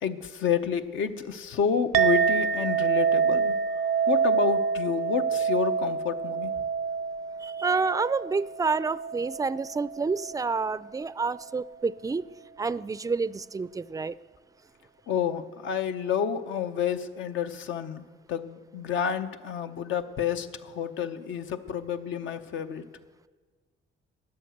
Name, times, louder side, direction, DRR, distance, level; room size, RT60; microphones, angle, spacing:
voice 1, 0.0-3.6 4.1-6.6 15.1-22.9, left 7 dB, 75° left, 8 dB, 0.9 m, -29 dB
Chink clink, 1.9-10.6, right 6 dB, 85° right, 0.7 m, -27 dB
voice 2, 7.4-12.3 12.6-14.2, right 4 dB, 15° right, 18 dB, 0.4 m, -29 dB
13.5 x 10.5 x 7.9 m, 1.5 s
cardioid pair, 90°, 20 cm